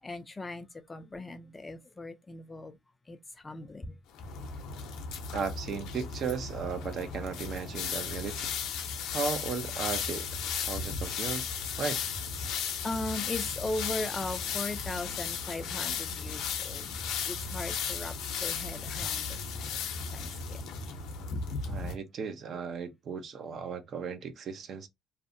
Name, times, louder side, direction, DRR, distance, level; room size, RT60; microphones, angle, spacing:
voice 1, 0.0-2.8 3.1-4.0 12.8-19.8 20.1-20.6, left 2 dB, 15° left, 0.3 m, -38 dB
sound 1, 4.1-21.9, left 6 dB, 80° left, 0.5 m, -35 dB
voice 2, 5.3-8.5 9.1-10.3 10.6-11.5 11.8-12.1 21.6-24.9, right 6 dB, 45° right, 0.5 m, -36 dB
2.6 x 2.0 x 2.5 m
cardioid pair, 140°, 0 cm